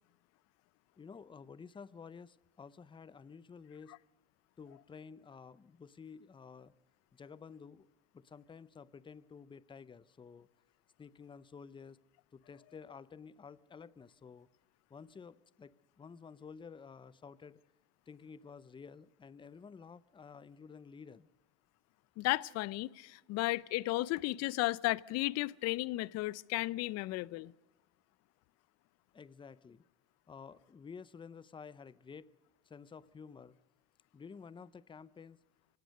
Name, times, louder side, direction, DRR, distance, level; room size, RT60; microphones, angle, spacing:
voice 1, 1.0-4.0 4.6-6.7 7.1-7.9 8.1-10.5 11.0-12.0 12.3-14.5 14.9-17.6 18.1-21.3 29.1-29.8 30.3-32.3 32.6-33.6 34.1-35.4, left 6 dB, 15° left, 0.7 m, -52 dB
voice 2, 22.2-27.5, left 19 dB, 55° left, 0.7 m, -34 dB
24.0 x 17.5 x 6.6 m
supercardioid pair, 105°, 31 cm